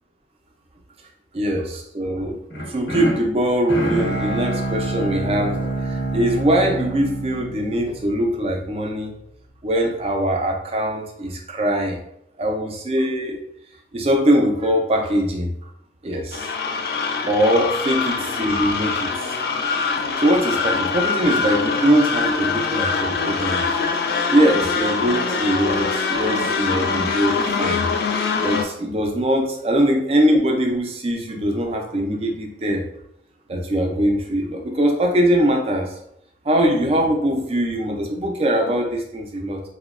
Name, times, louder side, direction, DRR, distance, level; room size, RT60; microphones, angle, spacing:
voice 1, 1.3-2.4 2.7-9.1 9.6-12.0 12.4-13.4 13.9-15.5 16.0-16.7 17.3-19.3 20.1-23.6 24.3-27.9 28.4-32.8 33.5-35.9 36.5-39.6, equal, 35° right, 2 dB, 0.4 m, -22 dB
sound 1, 2.5-8.6, right 1 dB, 85° left, 1.0 m, -27 dB
sound 2, 16.3-28.6, left 4 dB, 55° left, 0.3 m, -23 dB
2.8 x 2.1 x 2.3 m, 0.75 s
head